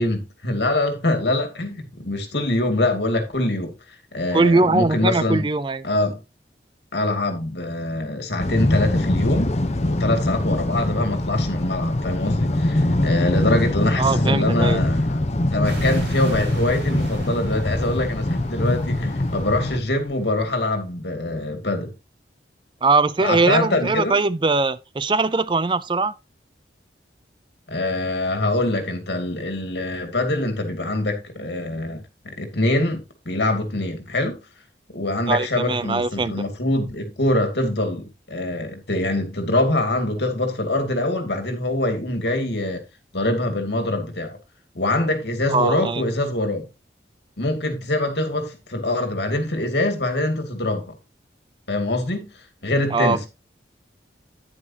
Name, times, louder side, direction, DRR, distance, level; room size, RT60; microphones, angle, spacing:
voice 1, 0.0-3.7 4.1-5.4 5.8-6.2 6.9-9.5 9.8-15.3 15.5-21.9 23.2-24.2 27.7-34.4 34.9-42.8 43.1-44.4 44.7-46.6 47.4-50.9 51.7-52.3 52.6-53.3, left 1 dB, 70° left, 2.4 m, -24 dB
voice 2, 4.3-5.8 14.0-14.8 22.8-26.1 35.3-36.3 45.5-46.0 52.9-53.2, right 3 dB, 25° right, 0.4 m, -21 dB
sound 1, 8.4-19.8, left 1 dB, 35° left, 0.9 m, -23 dB
sound 2, 15.6-20.9, right 1 dB, 85° right, 4.8 m, -37 dB
9.8 x 9.7 x 2.9 m
head